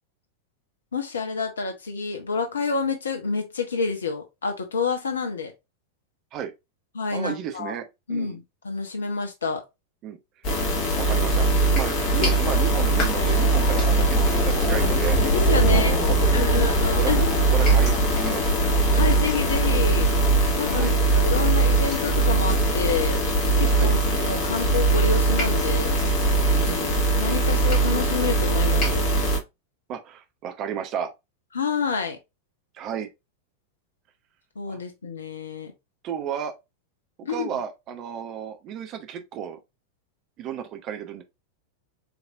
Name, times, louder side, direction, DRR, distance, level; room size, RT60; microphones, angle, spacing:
voice 1, 0.9-5.5 6.9-7.7 8.1-9.6 12.2-12.4 15.3-16.0 16.3-17.4 18.9-20.1 20.5-23.2 23.6-26.0 27.2-29.1 31.5-32.2 34.6-35.7 37.2-37.5, left 5 dB, 70° left, 1.0 m, -28 dB
voice 2, 7.1-8.4 10.0-10.2 11.0-11.5 11.7-15.2 15.7-16.2 16.4-16.6 16.9-17.1 17.5-18.6 20.6-21.0 23.7-23.9 26.5-27.0 29.9-31.1 32.7-33.1 34.7-34.8 36.0-36.5 37.3-39.6 40.4-41.2, right 8 dB, 35° right, 0.8 m, -33 dB
sound 1, 10.4-29.4, right 2 dB, 40° left, 1.8 m, -21 dB
4.8 x 3.3 x 2.6 m
figure-of-eight pair, 90°, 0 cm